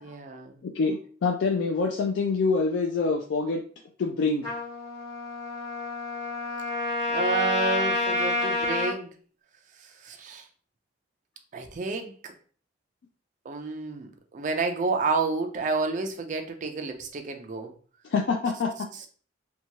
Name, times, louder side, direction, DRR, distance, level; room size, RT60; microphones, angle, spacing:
voice 1, 0.0-0.6 7.1-9.1 9.8-10.5 11.5-12.3 13.4-17.7, right 4 dB, 40° right, 5 dB, 0.4 m, -30 dB
voice 2, 0.6-3.6 4.0-4.5 18.1-18.7, left 4 dB, 65° left, 2 dB, 0.3 m, -26 dB
Trumpet, 4.4-8.9, left 2 dB, 20° left, 1.2 m, -29 dB
2.8 x 2.2 x 2.8 m, 0.43 s
head